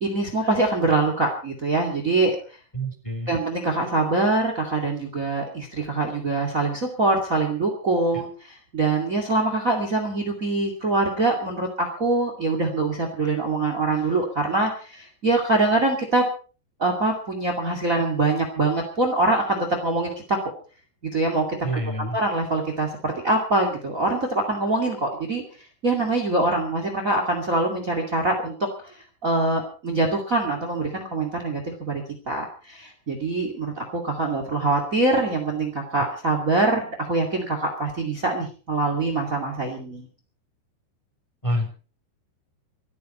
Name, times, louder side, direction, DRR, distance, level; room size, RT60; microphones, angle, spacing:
voice 1, 0.0-2.4 3.3-16.3 16.8-20.4 21.1-21.6 22.0-25.4 25.8-28.9 29.2-40.1, right 2 dB, 55° right, 4 dB, 0.9 m, -24 dB
voice 2, 2.7-3.4 21.6-22.2 41.4-41.7, equal, 10° left, 3 dB, 2.1 m, -27 dB
27.0 x 9.9 x 4.2 m, 0.38 s
omnidirectional pair, 6.0 m